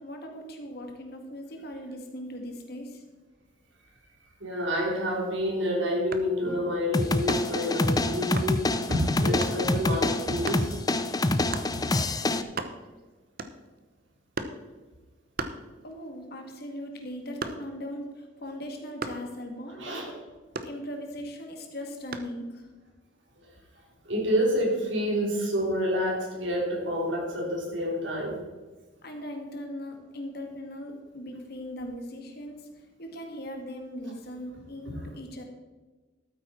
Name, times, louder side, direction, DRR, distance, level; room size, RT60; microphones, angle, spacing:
voice 1, 0.0-3.0 15.8-20.2 20.6-22.7 29.0-32.7 33.0-35.4, equal, 55° left, 3 dB, 1.9 m, -39 dB
voice 2, 4.4-8.6 8.9-10.8 11.7-11.8 19.8-20.1 24.1-28.4 34.9-35.0, equal, 80° right, -1 dB, 3.7 m, -28 dB
sound 1, 6.1-6.4 7.3-7.6 8.4-8.6 9.4-9.6 10.4-10.7 11.5-11.8 12.2-12.3 12.4-13.0 13.4-13.8 14.3-14.7 15.4-16.1 16.5-17.9 19.0-19.3 20.5-21.2 22.1-22.4, right 3 dB, 50° right, 0.8 m, -36 dB
sound 2, 6.9-12.4, left 2 dB, 20° left, 0.5 m, -26 dB
13.0 x 8.8 x 4.4 m, 1.3 s
head